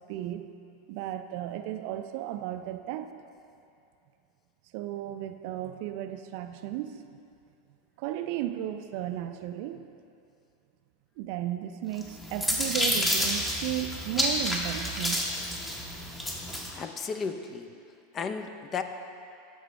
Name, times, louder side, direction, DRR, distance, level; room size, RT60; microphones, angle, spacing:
voice 1, 0.1-0.5 0.9-3.1 4.7-7.2 8.0-9.8 11.2-15.3, right 12 dB, 55° right, 8 dB, 0.4 m, -34 dB
sound 1, 12.0-16.7, equal, 15° left, 1.1 m, -29 dB
voice 2, 16.7-17.7 18.1-18.8, left 5 dB, 30° left, 8 dB, 0.5 m, -34 dB
12.5 x 5.1 x 3.3 m, 2.5 s
hypercardioid pair, 90°, 0 cm